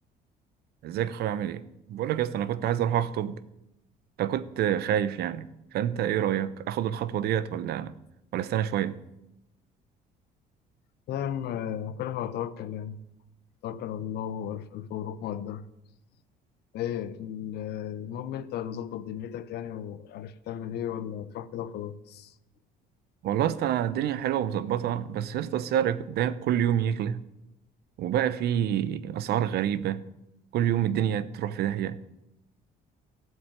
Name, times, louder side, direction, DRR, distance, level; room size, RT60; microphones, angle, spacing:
voice 1, 0.8-1.6 1.9-3.4 4.2-7.9 8.3-9.0 23.2-27.2 28.0-30.0 30.5-32.0, right 10 dB, 70° right, 0.9 m, -27 dB
voice 2, 11.1-13.0 13.6-15.6 16.7-22.3, left 10 dB, 75° left, 1.0 m, -35 dB
14.0 x 7.8 x 9.2 m
cardioid pair, 110°, 17 cm